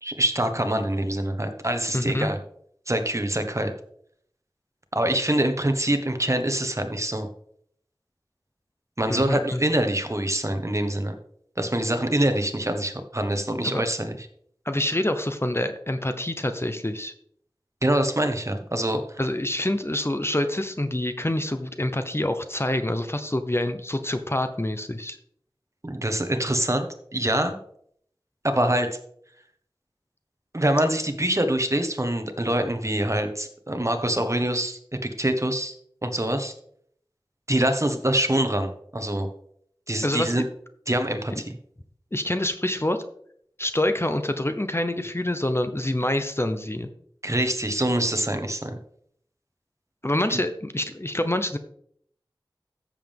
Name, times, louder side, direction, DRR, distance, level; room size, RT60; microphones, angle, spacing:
voice 1, 0.0-2.4 2.9-3.7 4.9-7.3 9.0-11.1 11.6-14.2 17.8-19.0 25.8-26.9 27.1-27.6 28.4-29.0 30.5-35.7 36.0-36.5 37.5-39.3 39.9-40.5 40.9-41.5 47.2-48.8 50.3-50.4, right 1 dB, 35° right, 7 dB, 1.3 m, -25 dB
voice 2, 1.9-2.3 9.1-9.6 13.6-13.8 14.7-17.1 19.2-25.2 40.0-40.4 41.3-41.4 42.1-43.0 43.6-46.9 50.0-51.6, left 1 dB, 30° left, 8 dB, 0.8 m, -26 dB
14.0 x 7.3 x 3.6 m, 0.65 s
wide cardioid pair, 45°, 9 cm